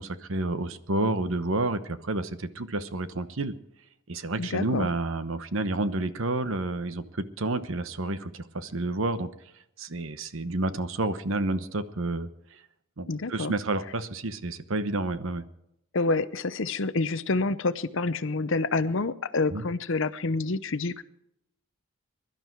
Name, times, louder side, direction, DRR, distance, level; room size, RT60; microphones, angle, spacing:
voice 1, 0.0-3.5 4.1-9.3 9.8-12.3 13.0-15.4 19.5-19.6, right 2 dB, 65° right, 12 dB, 1.0 m, -30 dB
voice 2, 4.4-4.9 13.1-13.5 15.9-21.0, left 3 dB, 60° left, 14 dB, 0.7 m, -28 dB
22.5 x 12.0 x 4.6 m, 0.80 s
head